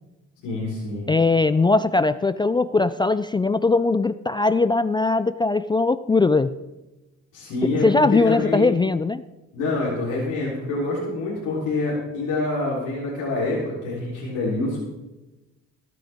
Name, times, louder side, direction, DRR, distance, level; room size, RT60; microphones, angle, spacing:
voice 1, 0.4-1.1 7.3-8.7 9.5-14.8, left 2 dB, 90° left, -7 dB, 3.8 m, -26 dB
voice 2, 1.1-6.5 7.8-9.2, left 3 dB, 15° left, 14 dB, 0.3 m, -20 dB
19.0 x 9.2 x 3.6 m, 1.1 s
cardioid pair, 90°, 30 cm